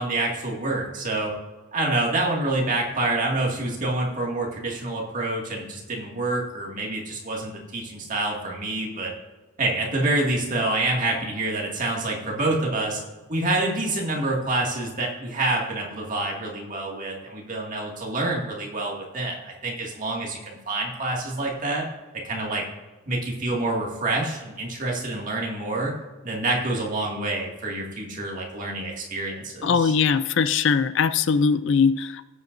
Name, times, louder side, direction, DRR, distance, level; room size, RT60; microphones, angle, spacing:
voice 1, 0.0-1.3 1.7-9.1 9.6-13.0 13.3-21.9 22.2-22.6 23.1-26.0 26.2-30.0, right 2 dB, 35° right, -2 dB, 2.1 m, -27 dB
voice 2, 29.6-32.2, left 6 dB, 55° left, 14 dB, 0.4 m, -21 dB
16.5 x 8.1 x 2.6 m, 1.3 s
head